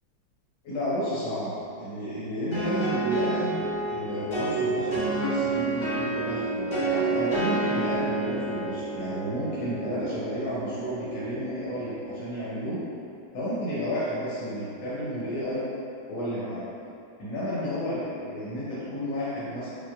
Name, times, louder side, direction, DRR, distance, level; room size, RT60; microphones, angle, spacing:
voice 1, 0.6-12.8 13.3-15.7 16.1-16.7 17.2-19.7, equal, 90° left, -10 dB, 1.6 m, -32 dB
sound 1, 2.5-12.1, right 3 dB, 60° left, 2.2 m, -29 dB
5.3 x 2.5 x 2.4 m, 2.7 s
omnidirectional pair, 2.1 m